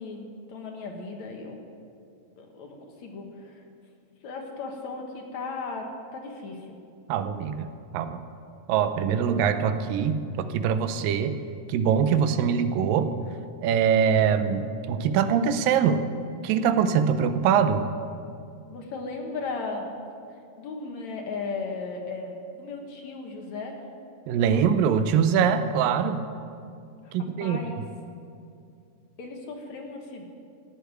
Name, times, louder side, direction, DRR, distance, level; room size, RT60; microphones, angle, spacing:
voice 1, 0.0-1.6 2.4-3.6 4.2-6.8 18.7-19.9 20.6-23.9 27.0-27.9 29.2-30.3, left 3 dB, 60° left, 2 dB, 2.4 m, -36 dB
voice 2, 7.1-8.2 8.7-11.3 11.7-13.1 13.6-16.0 16.4-17.8 24.3-26.2 27.1-27.6, right 7 dB, 90° right, 10 dB, 2.5 m, -23 dB
16.0 x 7.6 x 9.5 m, 2.5 s
omnidirectional pair, 3.9 m